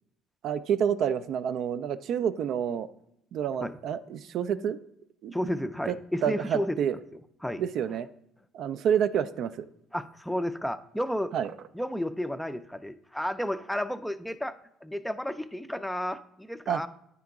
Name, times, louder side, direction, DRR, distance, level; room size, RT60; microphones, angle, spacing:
voice 1, 0.4-2.9 3.3-4.8 5.2-6.0 6.2-6.9 7.6-8.1 8.5-9.7 11.3-11.5 16.7-16.8, right 8 dB, 65° right, 12 dB, 0.3 m, -29 dB
voice 2, 5.3-6.8 7.4-7.6 9.9-11.3 11.7-14.6 14.8-16.9, equal, 5° left, 11 dB, 0.4 m, -32 dB
9.3 x 3.7 x 3.5 m, 0.77 s
supercardioid pair, 70°, 0 cm